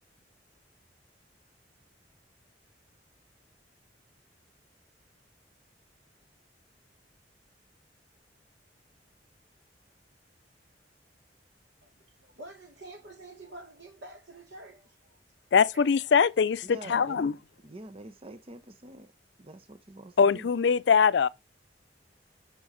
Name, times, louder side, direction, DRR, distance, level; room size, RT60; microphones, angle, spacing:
voice 1, 11.8-15.2 15.7-15.8, right 2 dB, 75° right, 2.6 m, -48 dB
voice 2, 15.5-17.3 20.2-21.3, left 6 dB, 75° left, 0.4 m, -22 dB
voice 3, 16.6-19.1 19.4-20.5, right 1 dB, 30° right, 0.8 m, -46 dB
6.9 x 6.3 x 4.9 m
head